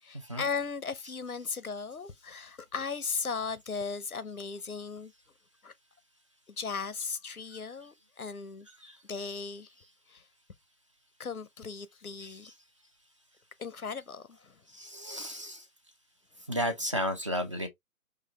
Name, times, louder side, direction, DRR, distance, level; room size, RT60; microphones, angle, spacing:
voice 1, 0.0-5.1 5.6-5.7 6.5-8.7 9.1-9.7 10.1-10.2 11.2-12.5 13.6-14.6, left 5 dB, 85° left, 0.8 m, -37 dB
voice 2, 12.2-12.5 14.7-15.7 16.5-17.7, equal, 20° right, 0.5 m, -34 dB
4.8 x 2.9 x 3.1 m
figure-of-eight pair, 140°, 43 cm